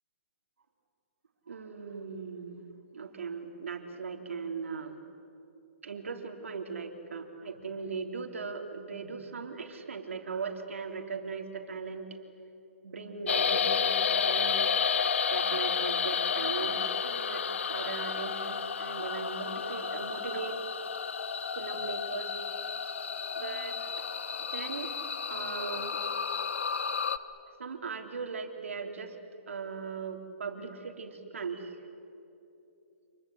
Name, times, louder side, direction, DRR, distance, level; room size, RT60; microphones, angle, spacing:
voice 1, 1.5-5.0 5.8-12.1 12.8-14.7 15.3-20.6 21.6-22.3 23.4-23.8 24.4-24.9 25.3-26.0 27.6-29.2 29.5-31.7, right 5 dB, 90° right, 4 dB, 3.6 m, -39 dB
sound 1, 13.3-27.2, left 6 dB, 70° left, 1.3 m, -31 dB
27.5 x 21.5 x 9.5 m, 2.8 s
hypercardioid pair, 170°, 7 cm